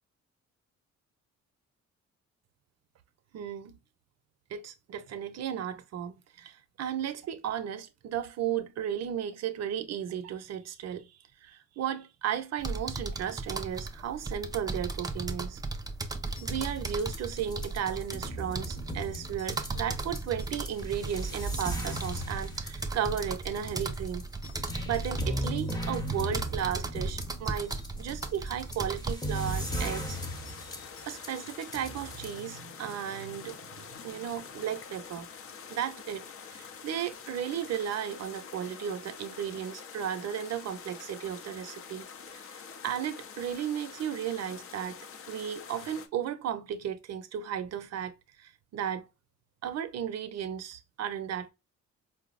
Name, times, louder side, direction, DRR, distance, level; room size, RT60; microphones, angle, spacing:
voice 1, 3.3-3.8 4.5-11.1 11.4-15.6 16.4-24.3 24.8-27.7 28.0-30.2 31.0-33.6 33.9-35.3 35.7-49.1 49.6-51.5, right 9 dB, 60° right, 0.6 m, -35 dB
sound 1, 12.6-29.1, right 3 dB, 15° right, 0.4 m, -36 dB
sound 2, 16.3-32.4, right 1 dB, 15° left, 0.8 m, -37 dB
sound 3, 29.3-46.1, left 6 dB, 50° left, 0.5 m, -46 dB
4.4 x 2.0 x 2.4 m
cardioid pair, 90°, 30 cm